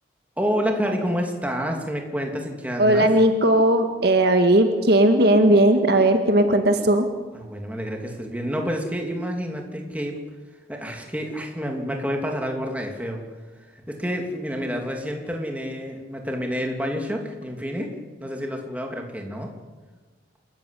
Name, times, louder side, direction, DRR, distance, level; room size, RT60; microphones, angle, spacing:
voice 1, 0.4-3.1 7.3-10.1 10.7-13.2 13.7-17.9 18.2-19.5, equal, 10° right, 2 dB, 2.9 m, -28 dB
voice 2, 2.8-7.1, right 1 dB, 60° right, 6 dB, 1.9 m, -17 dB
28.5 x 14.5 x 8.4 m, 1.3 s
head